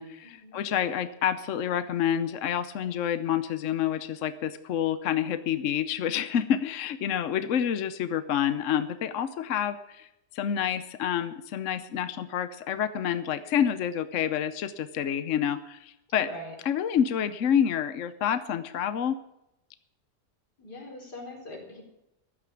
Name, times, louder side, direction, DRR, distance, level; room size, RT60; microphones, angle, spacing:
voice 1, 0.0-16.3 16.6-19.2, left 9 dB, 60° left, 12 dB, 1.0 m, -28 dB
voice 2, 16.2-16.5 20.6-21.8, left 1 dB, 75° left, 0 dB, 4.9 m, -42 dB
14.5 x 11.5 x 7.0 m, 0.86 s
omnidirectional pair, 1.7 m